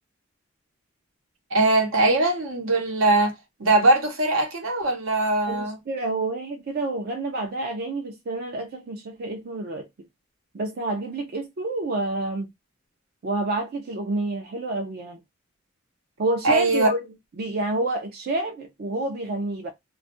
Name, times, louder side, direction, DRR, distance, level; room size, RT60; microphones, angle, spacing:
voice 1, 1.5-3.3 3.6-5.8 16.4-16.9, right 2 dB, 75° right, 0.9 m, -21 dB
voice 2, 5.5-10.1 10.5-12.5 13.2-15.2 16.2-17.0 17.4-19.7, right 2 dB, 50° right, 0.5 m, -28 dB
2.3 x 2.1 x 2.6 m
head